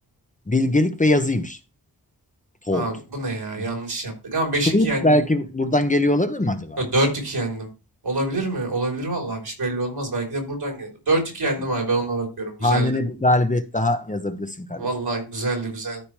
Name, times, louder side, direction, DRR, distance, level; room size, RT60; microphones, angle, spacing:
voice 1, 0.5-1.6 2.7-2.9 3.6-3.8 4.7-6.8 12.6-14.9, left 1 dB, 20° left, 0.9 m, -21 dB
voice 2, 2.7-5.2 6.8-7.7 8.0-12.9 14.8-16.0, right 2 dB, 85° right, 4.0 m, -26 dB
13.5 x 4.9 x 3.3 m
wide cardioid pair, 75°, 38 cm